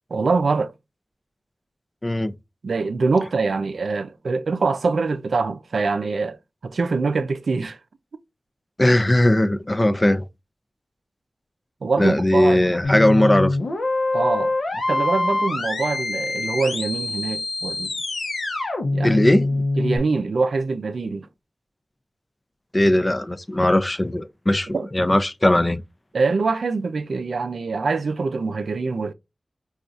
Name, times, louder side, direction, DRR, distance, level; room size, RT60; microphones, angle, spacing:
voice 1, 0.1-0.7 2.6-7.8 11.8-12.6 14.1-17.9 18.9-19.2 19.8-21.3 24.7-24.9 26.1-29.1, right 4 dB, 85° right, 0.4 m, -24 dB
voice 2, 2.0-2.3 8.8-10.2 12.0-13.6 19.0-19.6 22.7-25.8, left 1 dB, 30° left, 0.4 m, -19 dB
sound 1, 12.8-20.0, left 2 dB, 85° left, 0.7 m, -24 dB
4.0 x 2.3 x 2.4 m
cardioid pair, 45°, 0 cm